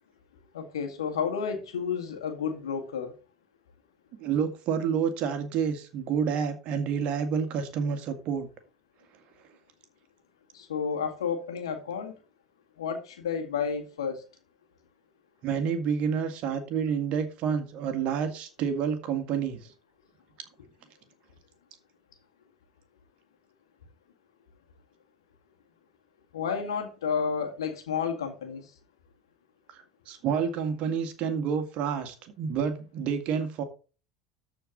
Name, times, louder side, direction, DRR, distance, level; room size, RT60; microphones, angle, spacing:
voice 1, 0.5-3.1 10.5-12.1 12.8-14.2 26.3-28.7, left 6 dB, 75° left, 1.9 m, -31 dB
voice 2, 4.2-8.5 15.4-19.7 29.7-33.6, right 7 dB, 50° right, 2.0 m, -29 dB
13.5 x 4.6 x 4.0 m
figure-of-eight pair, 70°, 3 cm